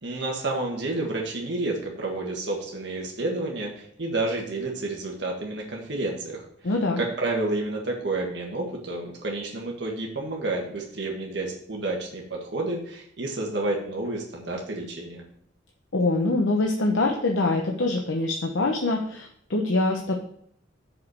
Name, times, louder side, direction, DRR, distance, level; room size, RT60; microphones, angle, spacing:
voice 1, 0.0-15.2, right 2 dB, 65° right, -1 dB, 1.6 m, -30 dB
voice 2, 6.6-7.0 15.9-20.1, left 2 dB, 90° left, 1 dB, 1.0 m, -24 dB
6.4 x 5.2 x 6.5 m, 0.66 s
head